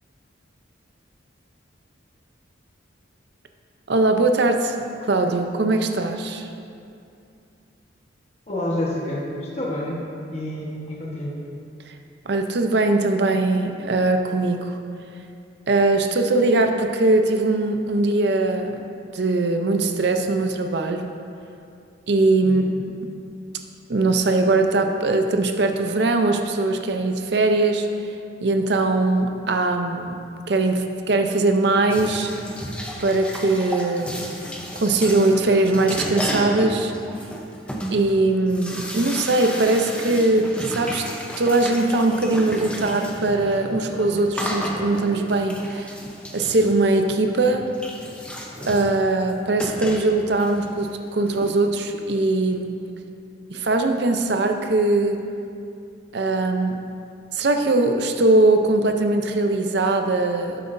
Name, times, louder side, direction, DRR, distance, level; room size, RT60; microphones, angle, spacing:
voice 1, 3.9-6.5 12.3-14.8 15.7-18.8 19.1-21.1 22.1-22.6 23.9-27.9 28.4-30.2 30.5-32.3 33.0-34.3 34.8-36.9 37.9-41.1 41.4-45.9 46.3-47.7 48.7-52.7 53.5-55.2 56.1-56.8 57.3-60.6, right 2 dB, 60° right, 5 dB, 0.6 m, -21 dB
voice 2, 8.5-11.3 22.4-22.6, left 1 dB, 35° left, -5 dB, 1.2 m, -29 dB
sound 1, 31.9-51.5, equal, 5° left, 0.7 m, -33 dB
12.0 x 7.7 x 2.6 m, 2.5 s
head